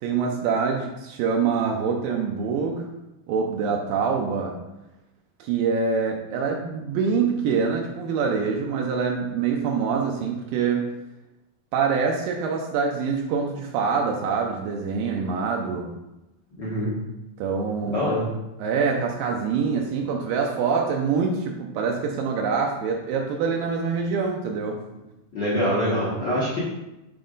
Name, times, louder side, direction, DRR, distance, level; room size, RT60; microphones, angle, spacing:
voice 1, 0.0-2.9 3.3-4.6 5.4-10.9 11.7-15.9 17.4-18.0 18.6-24.8, right 5 dB, 80° right, 1 dB, 2.3 m, -25 dB
voice 2, 16.6-16.9 17.9-18.3 25.3-26.6, equal, 60° left, -8 dB, 1.1 m, -24 dB
8.7 x 4.1 x 3.9 m, 0.96 s
omnidirectional pair, 4.2 m